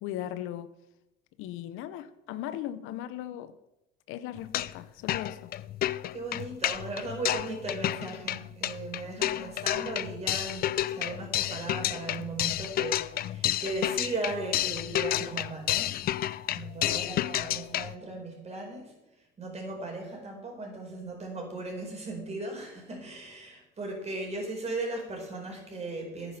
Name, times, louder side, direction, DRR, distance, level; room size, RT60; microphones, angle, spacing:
voice 1, 0.0-0.7 1.4-3.5 4.1-5.5 9.2-9.5, left 12 dB, 75° left, 0.7 m, -38 dB
sound 1, 4.4-4.8 5.1-17.9, left 13 dB, 45° left, 0.4 m, -31 dB
voice 2, 6.1-16.0 16.5-18.9 19.4-26.4, right 2 dB, 30° right, 4.6 m, -37 dB
10.0 x 9.6 x 5.6 m
cardioid pair, 100°, 21 cm